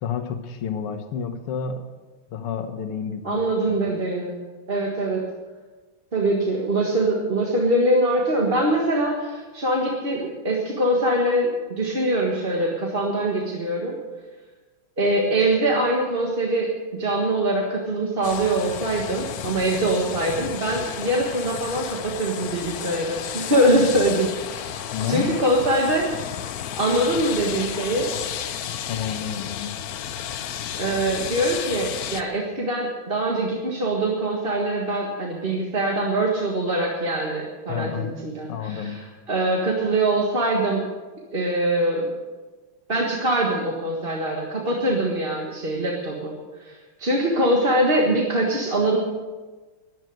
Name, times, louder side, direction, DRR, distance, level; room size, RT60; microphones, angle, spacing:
voice 1, 0.0-1.8 2.3-3.8 24.9-25.3 28.7-29.8 37.7-38.2 38.4-39.0, left 7 dB, 85° left, 7 dB, 2.2 m, -30 dB
voice 2, 3.2-4.4 4.7-5.2 6.1-14.0 15.0-26.1 26.8-28.1 30.8-39.0 39.3-40.8 41.3-42.1 42.9-49.0, right 1 dB, 30° right, -1 dB, 1.6 m, -23 dB
sound 1, 18.2-32.2, left 9 dB, 70° left, 0.9 m, -32 dB
12.5 x 11.0 x 7.9 m, 1.3 s
omnidirectional pair, 2.4 m